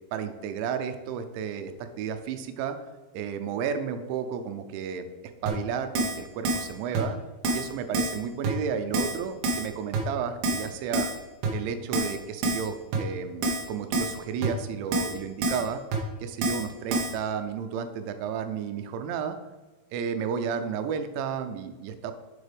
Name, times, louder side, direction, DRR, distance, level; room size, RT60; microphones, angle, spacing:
voice 1, 0.1-2.8 3.1-5.1 5.4-7.2 7.5-11.1 11.5-15.8 16.2-19.4 19.9-22.1, right 7 dB, 90° right, 8 dB, 3.0 m, -32 dB
Keyboard (musical), 5.5-5.6 5.9-6.2 6.4-6.7 6.9-7.0 7.4-7.7 7.9-8.2 8.4-8.5 8.9-9.2 9.4-9.7 9.9-10.0 10.4-10.7 10.9-11.2 11.4-11.5 11.9-12.2 12.4-12.7 12.9-13.0 13.4-13.7 13.9-14.2 14.4-14.5 14.9-15.1 15.4-15.6 15.9-16.0 16.4-16.6 16.9-17.1, right 2 dB, 70° right, 2.5 m, -27 dB
8.2 x 7.2 x 3.4 m, 1.2 s
omnidirectional pair, 5.1 m